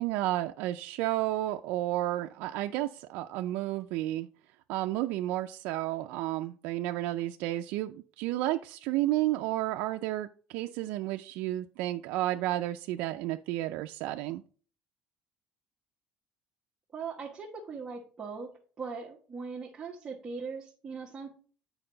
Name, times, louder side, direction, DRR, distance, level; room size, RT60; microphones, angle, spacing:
voice 1, 0.0-4.3 4.7-14.4, right 15 dB, 85° right, 6 dB, 0.4 m, -32 dB
voice 2, 16.9-18.5 18.8-21.3, right 5 dB, 25° right, -3 dB, 1.2 m, -40 dB
8.9 x 4.7 x 3.8 m, 0.42 s
cardioid pair, 150°, 3 cm